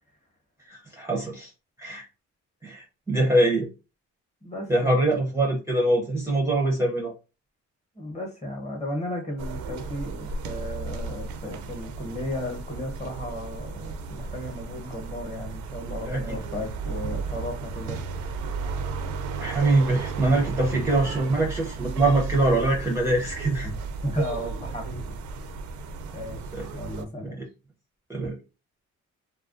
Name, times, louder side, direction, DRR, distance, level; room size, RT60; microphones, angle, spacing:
voice 1, 0.7-1.5 1.8-2.1 2.6-3.7 4.7-7.1 16.1-16.2 19.4-23.7 26.5-26.7 27.2-27.4 28.1-28.4, right 2 dB, 10° right, 0.5 m, -23 dB
voice 2, 4.4-5.3 7.9-18.0 20.8-20.9 23.6-23.7 24.0-25.2 26.1-26.4 26.7-27.4, left 1 dB, 20° left, 0.9 m, -34 dB
sound 1, 9.4-27.0, right 5 dB, 70° right, 0.4 m, -34 dB
2.3 x 2.2 x 2.4 m
cardioid pair, 90°, 30 cm